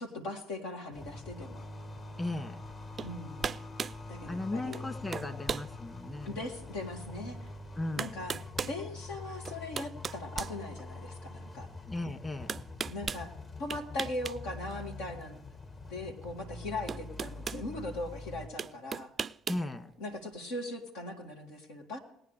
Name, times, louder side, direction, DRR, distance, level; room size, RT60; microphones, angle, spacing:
voice 1, 0.0-1.6 3.0-3.6 4.1-5.3 6.2-7.4 8.0-8.4 8.6-11.7 12.9-13.3 13.6-15.4 15.9-19.1 20.0-22.0, left 2 dB, 75° left, 2 dB, 2.2 m, -40 dB
sound 1, 0.9-18.5, left 2 dB, 40° left, 1.9 m, -45 dB
voice 2, 2.2-2.6 4.3-6.4 7.8-8.1 11.9-12.6 19.5-19.9, left 2 dB, 20° left, 8 dB, 2.0 m, -36 dB
sound 2, 3.0-3.1 3.4-4.0 4.7-4.9 5.1-5.7 6.3-6.4 7.5-7.6 8.0-8.8 9.4-11.1 12.5-13.2 13.7-14.4 14.7-14.8 16.2-16.3 16.9-17.6 18.6-19.7, right 6 dB, 40° right, 0.4 m, -36 dB
19.5 x 9.9 x 3.2 m, 0.78 s
hypercardioid pair, 60°, 0 cm